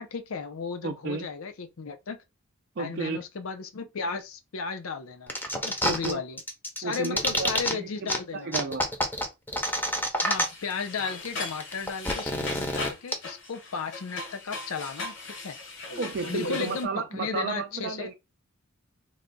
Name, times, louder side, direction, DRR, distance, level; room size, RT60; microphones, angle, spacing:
voice 1, 0.0-2.2 2.8-6.4 6.8-8.5 10.2-15.1 15.4-15.6 16.3-18.1, left 5 dB, 80° left, 0.6 m, -35 dB
voice 2, 0.8-1.3 2.8-3.2 5.8-6.2 6.8-8.9 16.0-18.1, right 4 dB, 50° right, 0.4 m, -33 dB
sound 1, 5.3-6.1 6.4-7.7 8.1-8.2 8.5-10.7 11.0-11.1 11.3-13.1, equal, 10° left, 0.6 m, -27 dB
sound 2, 10.2-16.8, left 3 dB, 60° left, 1.1 m, -38 dB
3.2 x 2.3 x 3.9 m
head